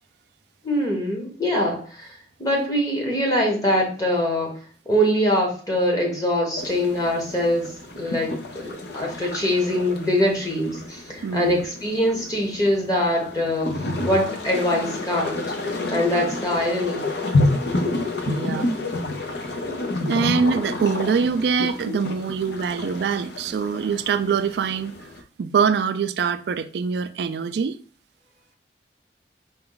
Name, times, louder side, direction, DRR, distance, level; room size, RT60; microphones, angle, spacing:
voice 1, 0.6-4.6 4.9-13.8 14.0-17.1, equal, 20° left, 1.0 m, -23 dB
sound 1, 6.6-25.2, left 2 dB, 70° left, 0.7 m, -29 dB
voice 2, 11.2-11.6 18.3-18.8 20.0-24.9 25.4-27.8, right 6 dB, 70° right, 0.3 m, -24 dB
4.2 x 2.3 x 3.8 m
head